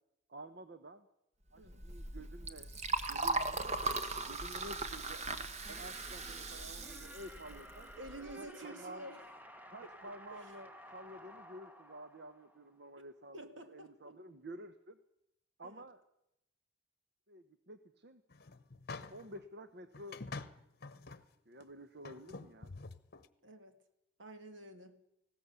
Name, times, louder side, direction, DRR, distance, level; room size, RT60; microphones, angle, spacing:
voice 1, 0.3-1.1 1.5-2.7 3.1-5.3 5.7-7.9 8.4-9.1 9.7-13.4 13.7-15.0 15.6-16.0 17.3-18.2 19.1-20.2 21.5-22.7, right 1 dB, 55° right, 1.0 m, -51 dB
Liquid, 1.6-8.3, right 3 dB, 35° right, 1.2 m, -38 dB
sound 1, 4.1-12.9, equal, 10° right, 1.0 m, -55 dB
voice 2, 7.9-9.3 9.8-9.9 10.3-10.5 13.3-14.2 15.6-15.9 23.4-23.8 24.2-25.0, right 1 dB, 70° right, 2.2 m, -50 dB
sound 2, 18.3-19.4 19.9-21.2 21.6-21.7 22.0-23.3, left 3 dB, 50° left, 1.0 m, -47 dB
19.5 x 17.0 x 8.2 m
head